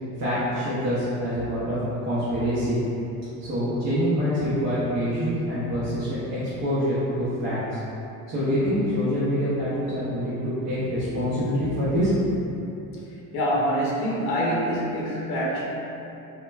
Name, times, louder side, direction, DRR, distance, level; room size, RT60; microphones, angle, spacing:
voice 1, 0.2-2.8 3.4-7.8 8.3-12.4, equal, 45° right, -12 dB, 0.7 m, -25 dB
voice 2, 13.3-15.6, equal, 80° left, -5 dB, 0.7 m, -25 dB
3.1 x 2.2 x 2.2 m, 3.0 s
cardioid pair, 140°, 38 cm